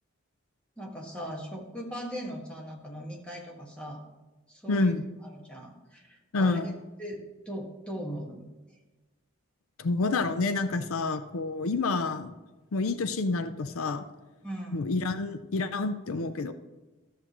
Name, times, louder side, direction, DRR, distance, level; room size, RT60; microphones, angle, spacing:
voice 1, 0.8-4.0 4.5-4.9 5.2-6.7 7.0-8.4 14.4-14.9, equal, 5° left, -2 dB, 1.6 m, -39 dB
voice 2, 4.7-5.0 6.3-6.7 9.8-12.3 12.7-14.0 14.7-16.5, left 3 dB, 75° left, 10 dB, 0.5 m, -28 dB
13.0 x 7.5 x 3.0 m, 1.2 s
head